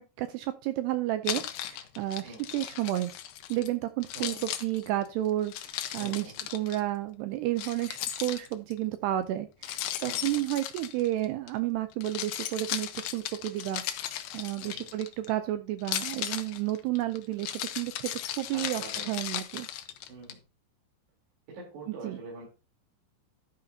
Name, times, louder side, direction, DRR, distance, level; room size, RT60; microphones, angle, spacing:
voice 1, 0.0-3.1 3.5-13.8 14.3-19.7 22.0-22.2, right 14 dB, 80° right, 10 dB, 2.5 m, -31 dB
Keys jangling, 1.2-3.7 4.0-6.8 7.6-8.8 9.6-11.5 11.9-15.3 15.8-20.3, left 12 dB, 85° left, 2.0 m, -36 dB
voice 2, 5.9-6.4 9.9-10.4 14.6-14.9 18.5-19.1 20.1-20.4 21.5-22.5, right 3 dB, 65° right, -5 dB, 5.6 m, -45 dB
11.5 x 9.2 x 2.8 m, 0.29 s
omnidirectional pair, 5.2 m